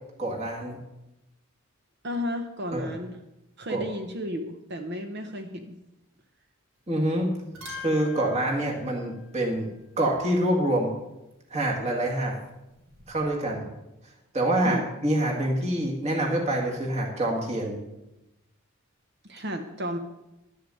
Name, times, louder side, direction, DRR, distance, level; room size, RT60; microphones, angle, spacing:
voice 1, 0.2-0.8 2.7-2.9 3.7-3.9 6.9-7.3 7.8-9.7 10.0-10.9 11.5-12.4 13.1-13.7 14.3-17.8, right 1 dB, 30° right, -1 dB, 2.0 m, -26 dB
voice 2, 2.0-3.2 3.6-5.8 14.6-14.9 19.3-20.0, left 1 dB, 55° right, 5 dB, 0.9 m, -33 dB
sound 1, 6.8-7.1 7.4-9.9 12.4-13.3, left 4 dB, 75° right, 2.8 m, -45 dB
12.0 x 6.6 x 7.8 m, 0.93 s
head